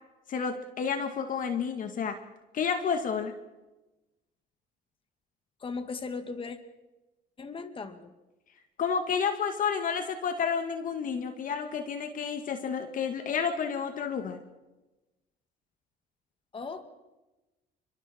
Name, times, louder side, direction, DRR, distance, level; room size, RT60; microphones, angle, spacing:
voice 1, 0.3-2.2 2.5-3.3 8.8-14.4, left 6 dB, 55° left, 7 dB, 2.0 m, -30 dB
voice 2, 5.6-6.6 7.4-8.1 16.5-16.8, left 4 dB, 30° left, 8 dB, 2.3 m, -37 dB
29.5 x 24.0 x 4.6 m, 1.1 s
cardioid pair, 110°, 17 cm